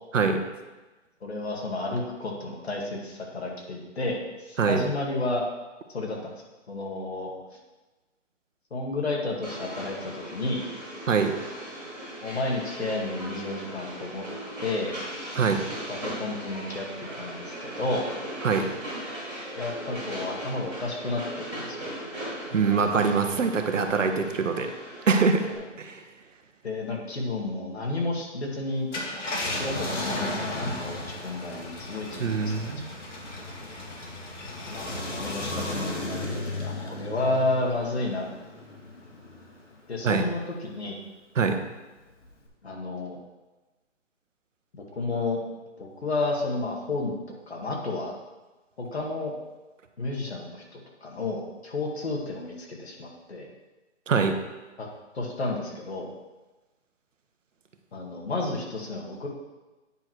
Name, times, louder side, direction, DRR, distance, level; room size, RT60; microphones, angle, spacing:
voice 1, 1.2-5.4 5.9-6.4 6.7-7.3 8.7-10.6 12.2-14.2 14.6-15.0 15.9-18.1 19.6-21.9 25.6-25.7 26.6-28.9 29.3-32.7 34.7-36.2 36.6-38.3 39.9-41.0 42.6-43.2 44.9-45.4 45.8-47.1 47.5-48.1 48.8-49.3 50.0-53.5 54.8-54.9 55.1-56.1 57.9-59.3, left 2 dB, 60° left, -1 dB, 2.1 m, -31 dB
Train, 9.4-25.6, right 1 dB, ahead, 2.8 m, -38 dB
voice 2, 22.5-24.7 25.1-25.5 25.8-26.0 32.2-32.8 40.0-40.2 41.4-41.6 54.1-54.4, right 5 dB, 85° right, 7 dB, 1.1 m, -23 dB
Car, 28.8-39.6 40.1-40.2 42.2-42.5, left 2 dB, 75° left, 2.1 m, -35 dB
9.5 x 4.8 x 4.5 m, 1.1 s
hypercardioid pair, 180°, 37 cm